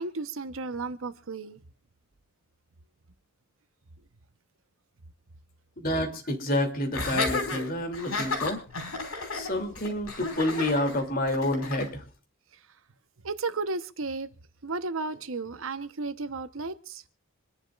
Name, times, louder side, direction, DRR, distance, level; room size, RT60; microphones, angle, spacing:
voice 1, 0.0-1.6 13.2-14.3 14.6-17.0, right 3 dB, 70° right, 0.9 m, -33 dB
voice 2, 5.8-8.6 9.3-12.0, left 1 dB, 40° left, 2.8 m, -28 dB
Laughter, 6.9-11.9, left 3 dB, 85° left, 5.2 m, -32 dB
26.5 x 11.0 x 2.4 m
head